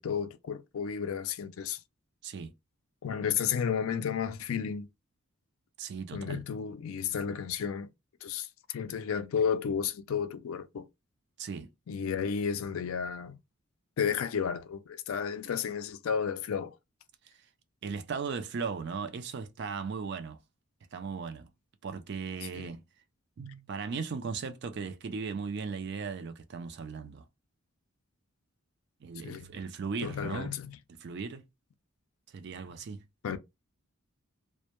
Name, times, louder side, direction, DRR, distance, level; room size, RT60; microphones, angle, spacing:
voice 1, 0.0-1.8 3.0-4.9 6.1-7.9 8.2-10.9 11.9-13.4 14.0-16.7 22.5-22.7 29.2-29.5 30.0-30.8 33.2-33.4, left 7 dB, 75° left, 0.4 m, -32 dB
voice 2, 5.8-6.4 11.4-11.7 17.8-20.4 20.9-21.5 21.8-22.8 23.4-27.2 29.0-30.5 31.0-31.4 32.3-33.0, right 5 dB, 50° right, 0.4 m, -37 dB
2.1 x 2.1 x 2.9 m
head